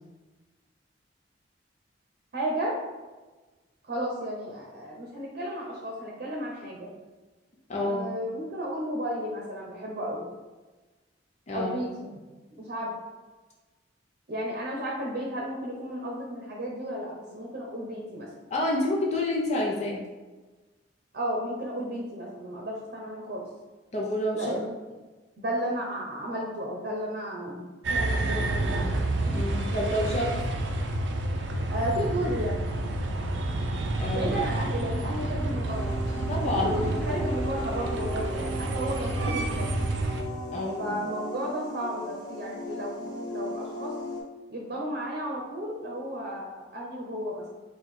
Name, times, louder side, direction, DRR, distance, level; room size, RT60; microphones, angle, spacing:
voice 1, 2.3-2.8 3.8-6.9 7.8-10.3 11.5-12.2 12.5-12.9 14.3-18.3 21.1-23.5 24.3-24.7 25.4-28.9 31.7-32.7 34.1-36.0 36.4-39.8 40.8-43.9 44.5-47.5, equal, 55° right, -2 dB, 0.8 m, -33 dB
voice 2, 7.7-8.1 11.5-11.7 18.5-20.0 23.9-24.5 29.3-30.4 34.0-34.3 36.3-36.8 39.3-39.4 40.5-40.9, left 1 dB, 40° left, -3 dB, 0.7 m, -28 dB
sound 1, 27.8-40.2, right 2 dB, 85° right, 0.5 m, -29 dB
sound 2, 35.6-44.2, equal, 25° left, 1.0 m, -37 dB
4.5 x 2.4 x 4.2 m, 1.2 s
head